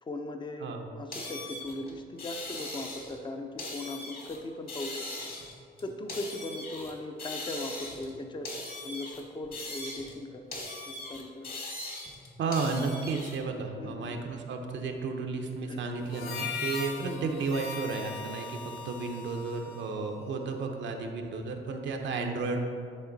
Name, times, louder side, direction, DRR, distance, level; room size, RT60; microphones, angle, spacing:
voice 1, 0.0-5.1 5.8-8.5 8.8-10.4 10.9-11.5 13.8-14.2 15.7-15.8 17.0-17.3, left 2 dB, 25° left, 5 dB, 0.6 m, -39 dB
sound 1, 1.1-3.2 3.6-4.4 4.7-6.9 7.2-8.1 8.4-10.2 10.5-13.4, left 2 dB, 50° left, 1.6 m, -40 dB
voice 2, 12.4-22.6, right 4 dB, 65° right, 3 dB, 0.8 m, -33 dB
Harmonica, 16.0-20.7, left 4 dB, 80° left, 0.8 m, -40 dB
9.9 x 3.6 x 4.0 m, 2.3 s
cardioid pair, 90°, 20 cm